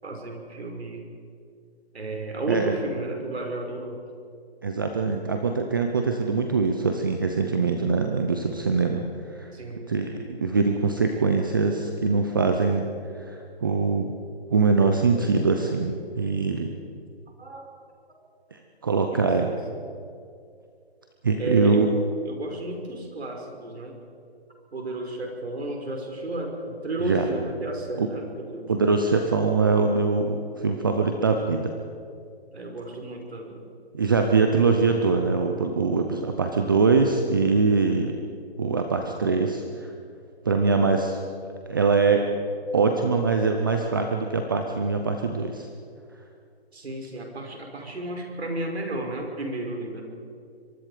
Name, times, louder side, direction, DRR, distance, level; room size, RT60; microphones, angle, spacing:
voice 1, 0.0-1.0 1.9-4.0 9.5-9.9 17.4-17.7 19.1-19.6 21.4-22.0 22.2-24.0 24.7-29.1 32.5-33.7 46.7-50.0, right 2 dB, 80° right, 1 dB, 5.5 m, -33 dB
voice 2, 4.6-9.0 9.4-9.5 9.9-12.9 13.3-14.1 14.5-16.7 18.5-19.5 21.2-21.9 27.0-27.3 28.0-28.1 28.7-31.7 33.9-38.2 38.6-39.9 40.5-41.2 41.7-42.3 42.7-45.7, right 4 dB, 20° right, 4 dB, 0.7 m, -23 dB
23.0 x 22.5 x 5.0 m, 2.4 s
hypercardioid pair, 165°, 32 cm